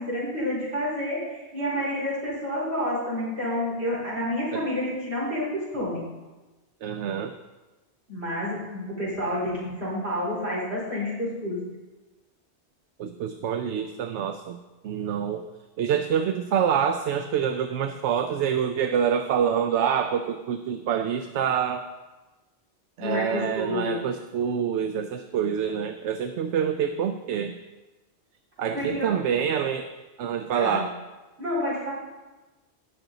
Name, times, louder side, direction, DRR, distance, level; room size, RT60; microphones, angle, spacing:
voice 1, 0.0-6.0 8.1-11.6 23.0-24.0 28.7-29.1 30.5-30.8 31.4-31.9, left 1 dB, 65° right, -6 dB, 4.7 m, -29 dB
voice 2, 6.8-7.3 13.0-14.6 14.8-15.4 15.8-21.9 23.0-27.6 28.6-29.9 30.2-30.9, right 8 dB, 85° right, 8 dB, 0.9 m, -26 dB
18.0 x 6.1 x 4.0 m, 1.2 s
omnidirectional pair, 1.2 m